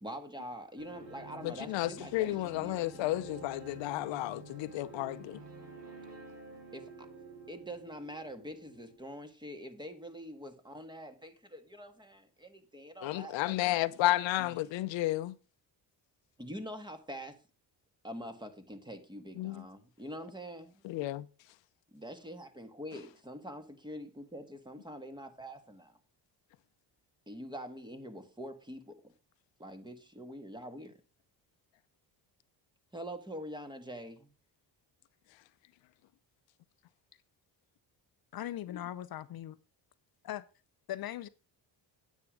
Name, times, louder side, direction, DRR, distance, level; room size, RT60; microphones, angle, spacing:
voice 1, 0.0-3.2 6.7-7.1 7.5-13.6 14.4-14.6 16.4-17.4 18.0-20.8 21.9-26.0 27.3-29.1 29.6-30.9 32.9-34.3, equal, 10° right, 1.6 m, -45 dB
sound 1, 0.8-9.0, right 3 dB, 70° right, 5.1 m, -50 dB
voice 2, 1.7-5.4 13.0-15.3 19.4-19.6 20.8-21.2, left 16 dB, 90° left, 0.7 m, -32 dB
voice 3, 38.3-39.6 40.2-40.4 40.9-41.3, left 12 dB, 55° left, 0.6 m, -39 dB
9.7 x 8.4 x 4.9 m
cardioid pair, 115°, 43 cm